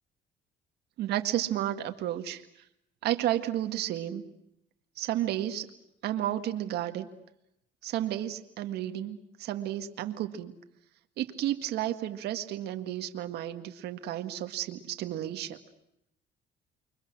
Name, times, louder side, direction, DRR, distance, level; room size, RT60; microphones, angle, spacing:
voice 1, 1.0-2.4 3.0-4.3 5.0-5.7 6.0-7.1 7.8-10.5 11.2-15.6, right 12 dB, 75° right, 7 dB, 2.0 m, -32 dB
29.5 x 24.0 x 6.3 m, 0.81 s
cardioid pair, 110°, 17 cm